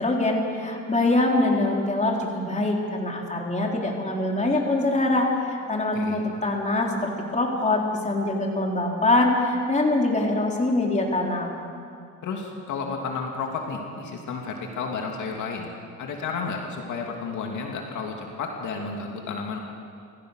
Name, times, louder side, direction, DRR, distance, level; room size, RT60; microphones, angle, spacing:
voice 1, 0.0-11.6, left 2 dB, 25° left, 0 dB, 3.9 m, -24 dB
voice 2, 12.2-15.7 16.0-19.6, left 4 dB, 75° left, 1 dB, 2.7 m, -32 dB
28.0 x 15.5 x 6.5 m, 2.3 s
cardioid pair, 90°, 30 cm